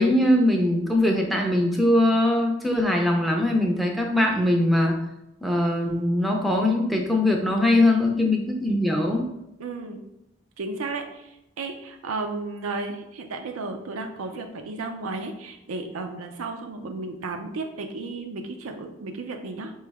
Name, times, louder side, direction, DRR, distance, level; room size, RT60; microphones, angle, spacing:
voice 1, 0.0-5.0 5.4-9.3, left 1 dB, ahead, 1 dB, 0.5 m, -21 dB
voice 2, 9.6-10.0 10.6-19.7, right 3 dB, 85° right, 4 dB, 0.5 m, -33 dB
4.8 x 3.1 x 3.4 m, 0.87 s
head